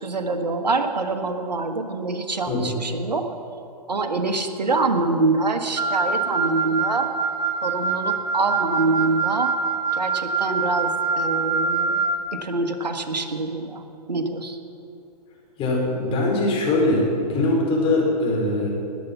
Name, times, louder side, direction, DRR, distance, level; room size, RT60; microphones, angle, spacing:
voice 1, 0.0-3.3 3.9-7.1 7.6-9.5 9.9-12.0 12.3-14.6, right 3 dB, 85° right, 6 dB, 1.5 m, -25 dB
Wind instrument woodwind instrument, 5.8-12.2, right 4 dB, 70° right, 1.8 m, -24 dB
voice 2, 15.6-18.7, left 2 dB, 25° left, -2 dB, 4.6 m, -22 dB
20.0 x 8.5 x 7.3 m, 2.6 s
figure-of-eight pair, 120°, 21 cm